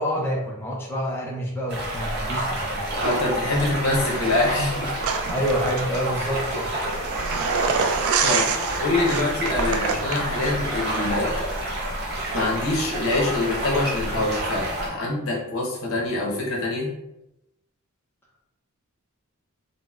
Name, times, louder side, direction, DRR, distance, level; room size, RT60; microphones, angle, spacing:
voice 1, 0.0-3.0 5.3-6.7, equal, 10° left, -3 dB, 0.4 m, -27 dB
sound 1, 1.7-14.9, right 1 dB, 50° right, 0.7 m, -28 dB
voice 2, 3.0-4.9 8.2-11.5 12.3-16.9, left 2 dB, 75° left, -2 dB, 0.8 m, -25 dB
sound 2, 5.0-10.5, right 6 dB, 75° right, 0.3 m, -27 dB
3.9 x 2.0 x 2.3 m, 0.88 s
head